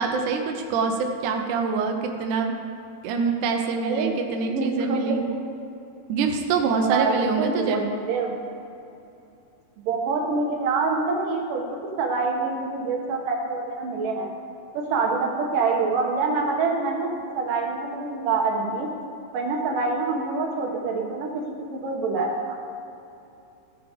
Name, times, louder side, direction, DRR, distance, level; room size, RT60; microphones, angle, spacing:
voice 1, 0.0-2.6 3.0-5.2 6.1-7.8, right 5 dB, 80° right, 3 dB, 1.7 m, -25 dB
voice 2, 3.8-4.2 4.5-5.4 6.9-8.4 9.9-14.3 14.7-18.9 19.3-22.5, right 4 dB, 65° right, 0 dB, 2.6 m, -26 dB
15.5 x 6.9 x 5.2 m, 2.8 s
omnidirectional pair, 4.7 m